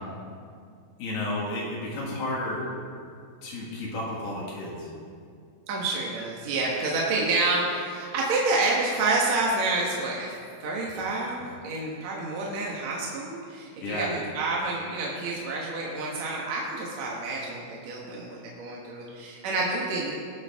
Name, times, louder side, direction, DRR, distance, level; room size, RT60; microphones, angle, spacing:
voice 1, 1.0-2.6 3.4-4.9 13.8-14.1, left 1 dB, 75° left, -5 dB, 3.6 m, -32 dB
voice 2, 5.7-10.3 10.6-20.1, right 2 dB, 60° right, -3 dB, 2.0 m, -28 dB
20.0 x 7.8 x 3.6 m, 2.3 s
omnidirectional pair, 4.6 m